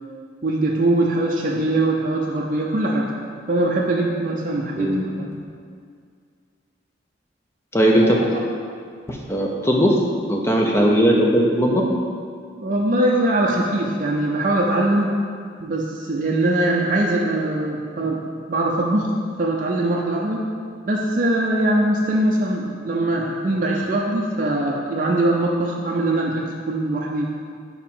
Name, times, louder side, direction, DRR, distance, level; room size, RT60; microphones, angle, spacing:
voice 1, 0.4-3.1 3.5-5.3 8.0-8.4 12.6-15.2 15.6-19.1 19.4-20.5 20.8-27.3, right 1 dB, 40° right, -2 dB, 0.5 m, -22 dB
voice 2, 4.8-5.4 7.7-8.2 9.1-10.0 10.3-11.8, equal, 15° left, -1 dB, 0.6 m, -18 dB
4.8 x 4.8 x 5.4 m, 2.1 s
head